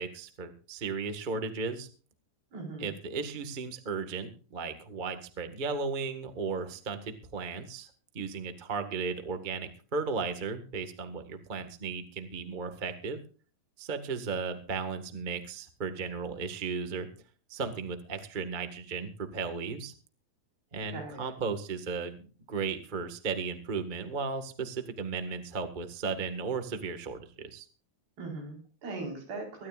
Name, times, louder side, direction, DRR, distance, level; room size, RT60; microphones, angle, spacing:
voice 1, 0.0-1.9 2.8-13.2 13.8-17.1 17.5-19.9 20.7-27.7, right 4 dB, 45° right, 7 dB, 0.6 m, -35 dB
voice 2, 2.5-2.9 20.9-21.3 28.2-29.7, right 3 dB, 85° right, 1 dB, 6.5 m, -39 dB
23.5 x 13.0 x 2.5 m, 0.39 s
omnidirectional pair, 4.1 m